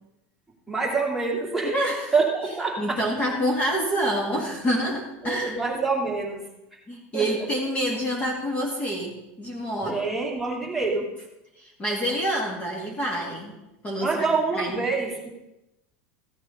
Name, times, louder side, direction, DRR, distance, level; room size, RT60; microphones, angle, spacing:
voice 1, 0.7-1.8 2.1-3.0 5.2-6.5 7.1-7.3 9.8-11.1 14.0-15.3, right 4 dB, ahead, -4 dB, 2.5 m, -26 dB
voice 2, 1.6-2.1 2.8-5.6 6.9-10.0 11.6-13.6 13.8-14.2 14.6-14.8, equal, 20° left, -1 dB, 2.0 m, -27 dB
15.0 x 8.3 x 5.7 m, 0.94 s
supercardioid pair, 155°, 7 cm